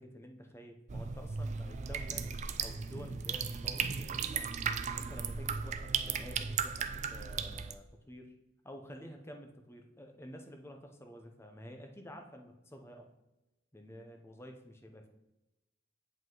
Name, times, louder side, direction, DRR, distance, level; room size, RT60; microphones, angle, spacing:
voice 1, 0.0-2.3 2.6-4.6 4.9-8.3 8.6-13.1 13.7-15.1, equal, 15° left, 4 dB, 0.7 m, -50 dB
sound 1, 0.9-7.7, right 6 dB, 40° right, 0.4 m, -36 dB
7.6 x 5.3 x 3.9 m, 0.98 s
head